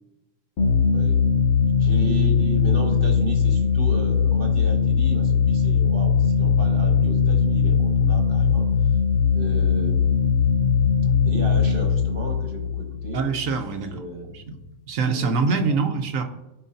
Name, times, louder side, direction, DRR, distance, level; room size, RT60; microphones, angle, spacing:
sound 1, 0.6-13.9, left 6 dB, 65° left, 1.3 m, -20 dB
voice 1, 0.9-1.2 1.8-8.7 9.3-10.2 11.2-13.2 13.7-14.3 15.1-15.8, right 2 dB, 45° right, 2 dB, 1.5 m, -34 dB
voice 2, 13.1-14.0 14.3-14.6 14.9-16.2, right 4 dB, 85° right, 5 dB, 1.2 m, -24 dB
15.0 x 5.0 x 2.7 m, 0.96 s
omnidirectional pair, 1.4 m